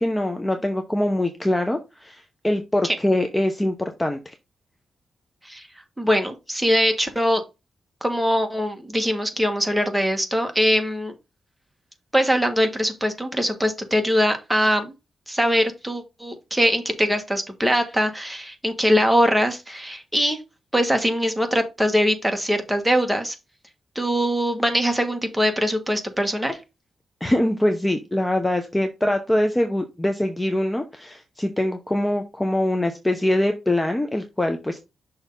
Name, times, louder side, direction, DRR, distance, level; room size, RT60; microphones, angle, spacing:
voice 1, 0.0-4.3 27.2-34.8, left 1 dB, 15° left, 6 dB, 0.8 m, -23 dB
voice 2, 6.0-7.4 8.0-11.1 12.1-14.9 15.3-20.4 20.7-23.3 23.9-26.6, equal, 5° right, 5 dB, 1.5 m, -22 dB
6.4 x 3.4 x 5.3 m, 0.25 s
cardioid pair, 90°, 0 cm